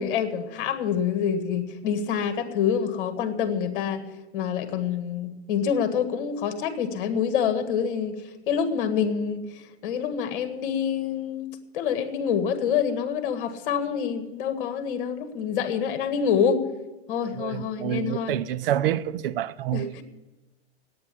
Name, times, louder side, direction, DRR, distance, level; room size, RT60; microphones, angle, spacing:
voice 1, 0.0-4.0 4.3-8.2 8.5-9.5 9.8-16.6 17.1-18.3 19.7-20.0, left 7 dB, 50° left, 1.7 m, -26 dB
voice 2, 17.3-19.9, right 11 dB, 55° right, 0.6 m, -27 dB
9.6 x 9.3 x 9.7 m
hypercardioid pair, 145°, 33 cm